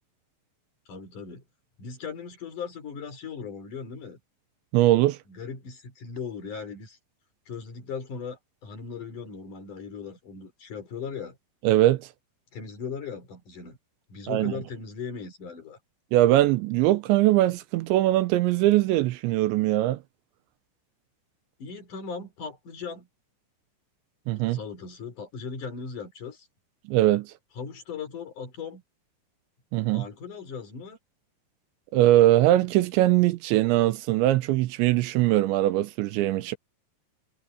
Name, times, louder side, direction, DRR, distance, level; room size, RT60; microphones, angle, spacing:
voice 1, 0.9-1.4 1.8-4.2 5.3-7.0 7.5-11.4 12.5-13.8 14.1-15.8 21.6-23.1 24.4-26.5 27.6-28.8 29.9-31.0, left 5 dB, 45° left, 5.3 m, -38 dB
voice 2, 4.7-5.2 11.6-12.1 14.3-14.5 16.1-20.0 24.3-24.6 26.9-27.3 29.7-30.0 31.9-36.6, right 15 dB, 80° right, 3.1 m, -21 dB
omnidirectional pair, 5.3 m